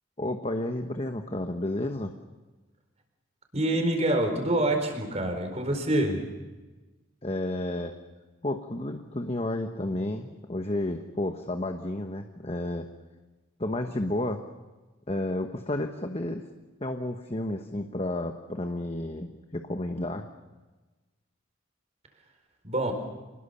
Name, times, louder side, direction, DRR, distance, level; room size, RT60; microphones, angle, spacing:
voice 1, 0.2-2.1 7.2-7.9 8.4-12.9 13.6-14.4 15.1-16.4 16.8-20.3, left 1 dB, 30° left, 5 dB, 1.1 m, -31 dB
voice 2, 3.5-6.2 22.6-22.9, right 1 dB, 30° right, 4 dB, 4.5 m, -26 dB
27.5 x 20.0 x 6.9 m, 1.2 s
head